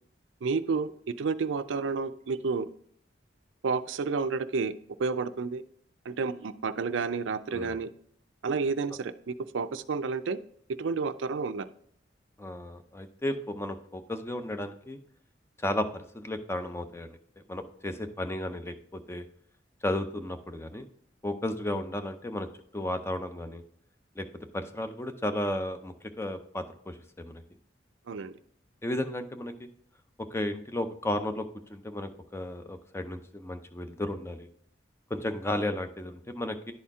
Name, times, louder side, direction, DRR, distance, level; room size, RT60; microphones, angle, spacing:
voice 1, 0.4-0.9 1.2-2.7 3.6-4.7 5.0-5.6 6.1-7.9 8.4-10.4 10.8-11.7 28.1-28.3, right 4 dB, 85° right, 12 dB, 0.4 m, -30 dB
voice 2, 12.4-15.0 15.6-17.2 17.5-19.2 19.8-20.9 21.2-22.5 22.7-23.6 24.2-27.4 28.8-29.7 30.2-34.5 35.1-36.7, left 1 dB, 15° left, 8 dB, 0.5 m, -34 dB
11.0 x 4.3 x 3.6 m, 0.64 s
head